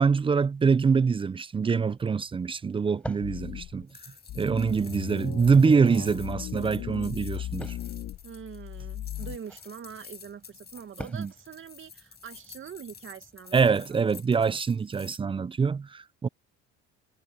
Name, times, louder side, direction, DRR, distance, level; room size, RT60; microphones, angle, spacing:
voice 1, 0.0-3.9 4.3-7.8 11.2-11.3 13.5-16.3, right 5 dB, 20° right, 0.4 m, -24 dB
sound 1, 1.6-14.0, left 1 dB, 5° left, 4.6 m, -51 dB
sound 2, 3.2-3.8 4.3-9.4, left 13 dB, 65° left, 2.7 m, -37 dB
sound 3, 3.9-15.2, left 6 dB, 35° left, 5.6 m, -50 dB
voice 2, 4.7-5.3 8.2-14.0, right 8 dB, 45° right, 2.1 m, -44 dB
cardioid pair, 100°, 30 cm